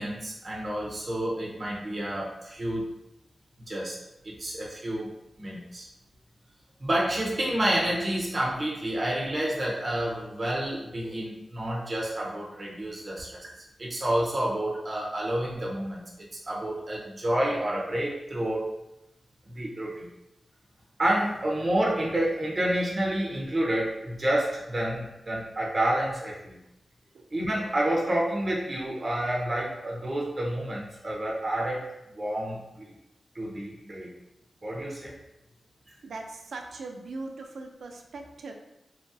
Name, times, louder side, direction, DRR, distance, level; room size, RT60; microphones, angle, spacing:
voice 1, 0.0-2.9 3.7-4.0 4.2-5.1 5.4-5.9 6.8-13.5 13.8-16.1 16.5-18.7 19.5-20.1 21.0-26.6 27.3-31.9 32.2-32.9 33.3-34.1 34.6-35.2, right 1 dB, 30° right, -3 dB, 0.5 m, -29 dB
voice 2, 36.0-38.5, right 3 dB, 85° right, 4 dB, 0.4 m, -40 dB
2.9 x 2.4 x 2.6 m, 0.89 s
wide cardioid pair, 135°, 0 cm